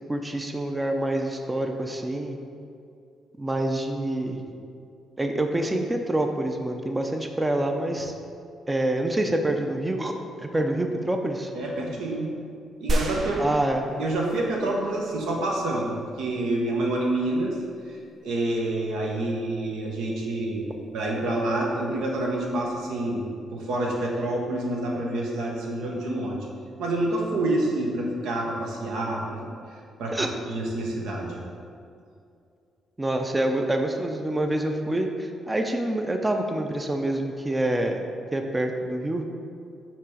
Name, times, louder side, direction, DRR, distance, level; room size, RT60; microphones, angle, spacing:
voice 1, 0.1-2.4 3.4-4.4 5.2-8.1 8.7-10.1 10.4-11.5 13.4-13.8 30.1-30.3 33.0-39.2, right 1 dB, 15° right, 4 dB, 0.5 m, -26 dB
voice 2, 11.5-12.3 12.8-13.5 14.0-17.6 17.9-26.5 26.8-29.4 29.7-31.4, right 1 dB, 85° right, -1 dB, 1.0 m, -28 dB
sound 1, 12.9-15.2, right 1 dB, 55° right, 0.7 m, -30 dB
7.2 x 3.0 x 4.9 m, 2.4 s
cardioid pair, 90°, 0 cm